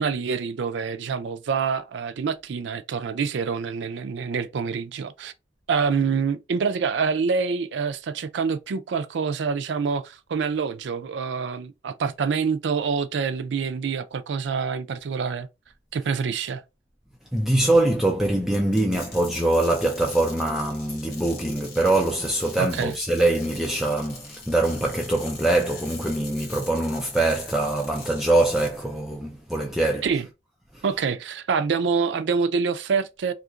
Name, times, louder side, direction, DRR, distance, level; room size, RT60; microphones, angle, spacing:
voice 1, 0.0-5.3 5.7-15.5 15.9-16.6 22.6-22.9 30.0-30.3 30.8-33.3, right 5 dB, 75° right, 0.4 m, -26 dB
voice 2, 17.3-30.3 30.7-31.1, right 2 dB, ahead, 0.3 m, -23 dB
sound 1, 18.5-28.8, left 4 dB, 55° left, 1.1 m, -43 dB
2.8 x 2.4 x 3.6 m
head